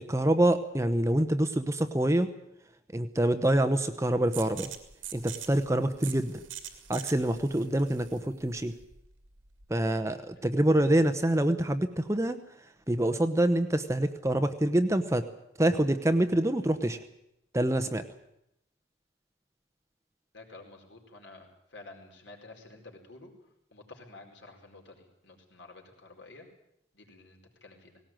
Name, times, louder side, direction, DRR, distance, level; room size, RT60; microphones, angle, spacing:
voice 1, 0.0-2.3 2.9-4.7 5.1-6.4 6.9-8.7 9.7-12.4 12.9-15.3 15.6-17.0 17.5-18.0, right 1 dB, 15° right, 9 dB, 0.9 m, -26 dB
sound 1, 4.3-9.8, right 10 dB, 90° right, 2.5 m, -44 dB
voice 2, 20.3-23.3 23.7-26.5 26.9-28.0, left 2 dB, 65° left, 2 dB, 4.5 m, -51 dB
18.5 x 18.0 x 9.0 m, 0.80 s
head